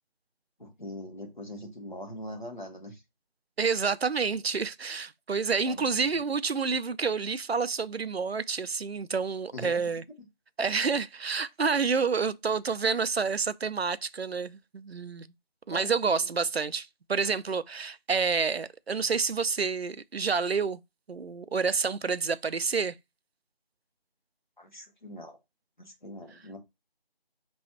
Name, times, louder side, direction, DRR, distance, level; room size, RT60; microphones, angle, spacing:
voice 1, 0.6-3.0 5.6-6.2 9.5-9.8 10.2-10.3 15.7-16.3 24.6-25.4 25.8-26.6, left 1 dB, 50° left, 1.5 m, -42 dB
voice 2, 3.6-10.0 10.6-15.3 15.7-20.8 21.1-23.0, right 5 dB, 85° right, 0.5 m, -29 dB
5.4 x 3.1 x 2.9 m
figure-of-eight pair, 180°, 30 cm